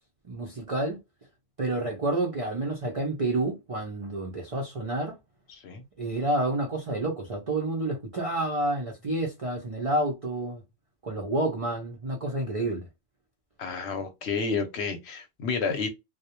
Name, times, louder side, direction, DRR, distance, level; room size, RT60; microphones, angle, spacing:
voice 1, 0.2-1.0 1.6-5.2 6.0-10.6 11.0-12.9 15.7-15.9, right 2 dB, 60° right, 0.3 m, -29 dB
voice 2, 5.5-5.8 13.6-15.9, left 5 dB, 65° left, 0.9 m, -30 dB
2.3 x 2.0 x 2.8 m
omnidirectional pair, 1.3 m